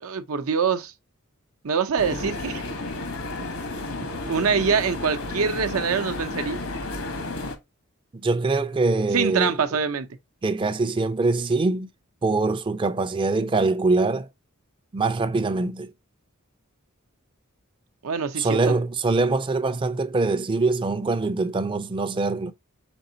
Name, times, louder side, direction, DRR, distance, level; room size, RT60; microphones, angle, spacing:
voice 1, 0.0-0.9 1.6-2.6 4.3-6.6 9.1-10.1 18.0-18.8, right 6 dB, 85° right, 0.7 m, -24 dB
sound 1, 2.0-7.6, left 2 dB, 75° left, 1.1 m, -32 dB
voice 2, 8.2-9.6 10.4-11.9 12.2-14.3 14.9-15.9 18.4-22.5, right 3 dB, 25° right, 0.4 m, -23 dB
5.2 x 3.7 x 2.6 m
head